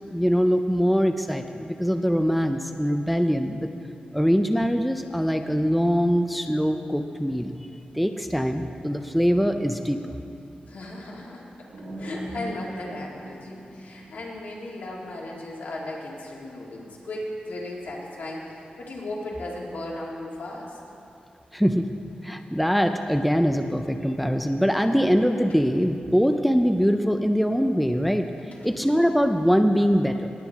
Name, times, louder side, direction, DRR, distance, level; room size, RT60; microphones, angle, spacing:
voice 1, 0.0-3.7 4.1-7.6 7.9-10.1 21.5-21.9 22.2-28.3 28.6-30.3, equal, ahead, 6 dB, 0.4 m, -23 dB
voice 2, 10.7-11.5 12.0-20.8, left 1 dB, 70° left, -3 dB, 2.0 m, -36 dB
sound 1, 11.7-14.5, right 1 dB, 70° right, 2.2 m, -38 dB
18.5 x 9.0 x 3.5 m, 2.6 s
wide cardioid pair, 155°, 3 cm